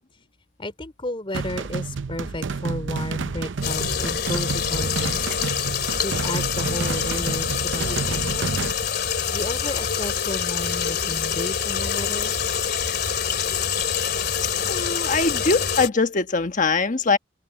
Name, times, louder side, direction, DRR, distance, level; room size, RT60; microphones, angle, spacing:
voice 1, 0.6-5.3 6.0-8.7 9.3-12.3, left 1 dB, 30° left, 4.0 m, -33 dB
sound 1, 1.3-8.7, right 4 dB, 80° right, 0.6 m, -30 dB
sound 2, 3.6-15.9, left 7 dB, 60° left, 2.7 m, -26 dB
voice 2, 14.7-17.2, left 4 dB, 45° left, 1.2 m, -22 dB
head